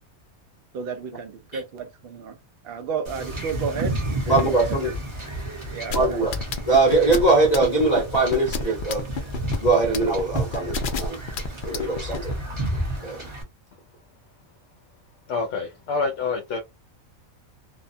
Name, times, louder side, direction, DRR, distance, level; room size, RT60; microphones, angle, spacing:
voice 1, 0.7-2.4 2.6-3.9 4.3-4.8 5.7-6.2, right 6 dB, 65° right, 0.6 m, -32 dB
Wind / Ocean / Boat Water vehicle, 3.0-13.4, right 1 dB, 25° right, 0.9 m, -32 dB
voice 2, 4.3-4.9 5.9-6.3 6.7-9.1 9.6-11.2 11.6-12.3 13.0-13.2, right 3 dB, 35° left, 0.9 m, -21 dB
sound 1, 5.9-12.3, left 4 dB, 90° left, 0.4 m, -29 dB
voice 3, 15.3-16.6, left 4 dB, 65° left, 0.8 m, -27 dB
2.7 x 2.2 x 2.6 m
omnidirectional pair, 1.4 m